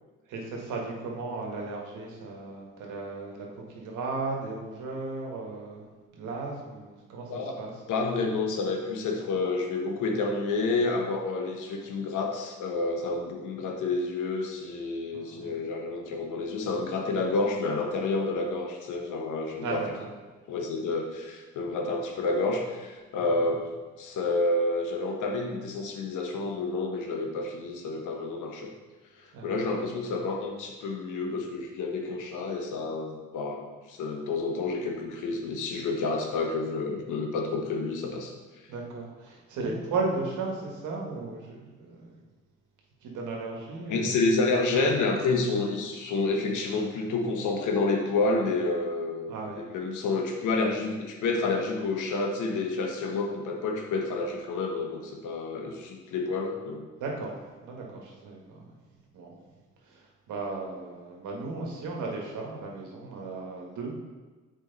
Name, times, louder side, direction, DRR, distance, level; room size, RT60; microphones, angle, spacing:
voice 1, 0.3-5.9 6.1-7.7 15.1-15.6 19.6-20.1 23.3-23.4 29.3-29.5 38.7-42.2 43.0-44.3 49.3-49.6 57.0-57.3 57.6-58.7 59.1-59.3 59.8-63.9, right 3 dB, 80° right, -1 dB, 1.7 m, -35 dB
voice 2, 7.9-19.8 20.5-23.7 24.0-28.7 29.2-38.3 43.9-56.9, left 3 dB, 80° left, 2 dB, 1.2 m, -29 dB
7.4 x 4.8 x 4.0 m, 1.3 s
cardioid pair, 90°, 30 cm